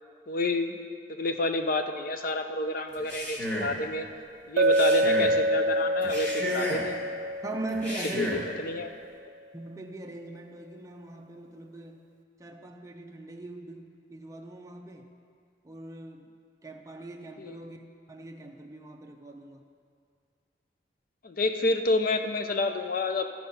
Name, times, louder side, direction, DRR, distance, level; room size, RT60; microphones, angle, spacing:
voice 1, 0.3-0.8 1.1-4.1 4.5-7.0 8.2-8.3 8.6-8.9 17.4-17.6 21.2-23.2, left 2 dB, 55° left, 7 dB, 0.6 m, -29 dB
Male speech man speaking, 2.9-3.8 4.6-5.4 6.0-7.0 7.7-8.5, equal, 10° left, 1.8 m, -33 dB
Chink clink, 4.6-8.6, right 1 dB, 90° right, 0.3 m, -26 dB
voice 2, 7.4-8.3 9.5-12.1 12.4-15.1 15.6-16.3 16.6-19.7, right 2 dB, 20° right, 2 dB, 0.6 m, -40 dB
13.5 x 4.6 x 5.5 m, 2.2 s
head